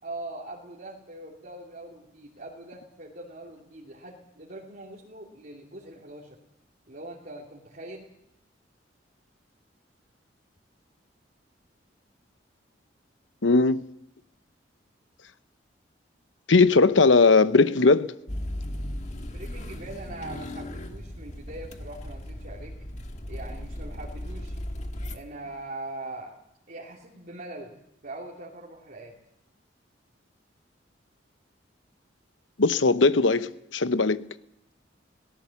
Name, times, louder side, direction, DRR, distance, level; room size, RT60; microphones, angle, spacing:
voice 1, 0.0-6.4 6.9-8.1 19.3-22.7 23.3-24.6 25.1-26.4 26.7-27.8 28.0-29.1, right 2 dB, 50° right, 2.6 m, -42 dB
voice 2, 13.4-13.8 16.5-18.1 32.6-34.3, left 3 dB, 90° left, 0.9 m, -19 dB
sound 1, 18.3-25.2, left 1 dB, 40° left, 1.6 m, -36 dB
23.5 x 18.5 x 7.0 m
head